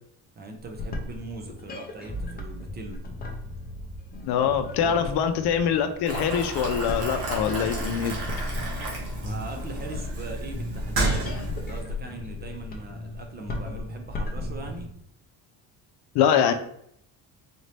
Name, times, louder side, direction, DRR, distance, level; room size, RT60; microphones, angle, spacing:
voice 1, 0.4-3.0 4.8-5.0 9.1-14.9, right 2 dB, 25° right, 3 dB, 0.5 m, -40 dB
sound 1, 0.6-14.9, left 2 dB, 25° left, 0.5 m, -37 dB
voice 2, 4.3-8.2 16.1-16.5, left 8 dB, 75° left, 8 dB, 0.6 m, -24 dB
Boiling, 6.0-11.8, right 1 dB, 75° right, 1.5 m, -31 dB
4.2 x 2.7 x 3.2 m, 0.69 s
cardioid pair, 165°, 39 cm